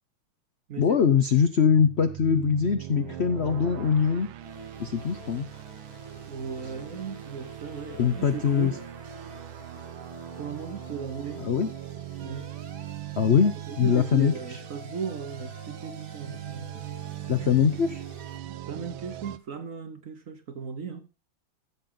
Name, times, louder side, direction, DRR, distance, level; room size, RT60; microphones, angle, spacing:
voice 1, 0.8-4.3 4.8-5.5 8.0-8.7 11.4-11.7 13.2-14.6 17.3-18.0, left 7 dB, 70° left, 0.6 m, -23 dB
sound 1, 1.5-19.4, right 13 dB, 80° right, 1.6 m, -40 dB
sound 2, 4.4-18.4, left 2 dB, 30° left, 1.3 m, -48 dB
voice 2, 6.3-8.8 10.4-11.5 12.2-12.5 13.7-17.0 18.5-21.1, right 6 dB, 55° right, 1.0 m, -37 dB
14.5 x 7.4 x 3.8 m
omnidirectional pair, 2.2 m